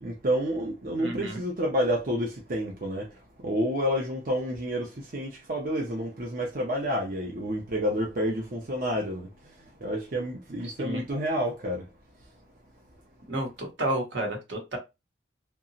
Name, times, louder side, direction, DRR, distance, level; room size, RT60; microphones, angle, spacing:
voice 1, 0.0-3.1 3.4-9.3 9.8-11.8, equal, 50° right, 0.6 m, -29 dB
voice 2, 1.0-1.4 10.8-11.0 13.3-14.8, right 1 dB, 75° right, 1.0 m, -31 dB
2.8 x 2.2 x 2.6 m
head